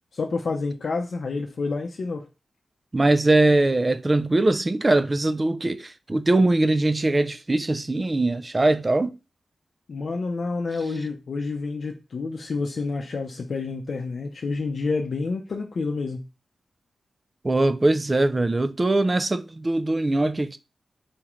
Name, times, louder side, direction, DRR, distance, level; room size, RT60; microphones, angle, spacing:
voice 1, 0.1-2.3 9.9-16.2, left 4 dB, 65° left, 0.6 m, -29 dB
voice 2, 2.9-9.2 17.4-20.6, right 2 dB, 25° right, 0.4 m, -21 dB
4.3 x 3.7 x 3.0 m
wide cardioid pair, 100°, 0 cm